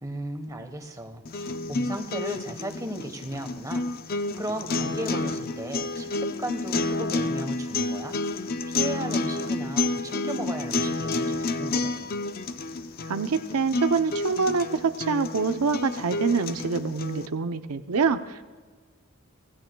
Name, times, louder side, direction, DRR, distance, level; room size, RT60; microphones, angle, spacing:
voice 1, 0.0-12.2, right 1 dB, 15° right, 5 dB, 1.2 m, -36 dB
sound 1, 1.3-17.3, left 3 dB, 40° left, 0.5 m, -30 dB
voice 2, 13.1-18.6, right 5 dB, 85° right, 9 dB, 0.6 m, -26 dB
25.5 x 16.5 x 2.3 m, 1.4 s
head